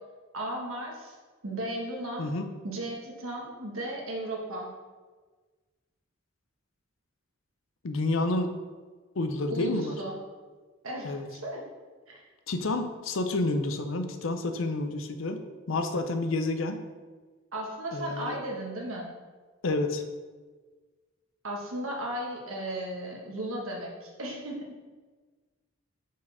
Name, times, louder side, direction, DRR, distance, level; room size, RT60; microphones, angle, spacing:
voice 1, 0.3-1.1 1.4-2.3 2.6-4.7 9.5-10.2 10.8-11.6 12.1-12.2 17.5-19.1 21.4-24.7, right 1 dB, 90° right, -1 dB, 1.4 m, -35 dB
voice 2, 2.2-2.6 7.8-8.5 9.2-10.0 11.0-11.3 12.5-15.4 15.7-16.8 17.9-18.4 19.6-20.0, left 2 dB, 75° left, 8 dB, 0.6 m, -29 dB
5.1 x 4.2 x 5.5 m, 1.4 s
head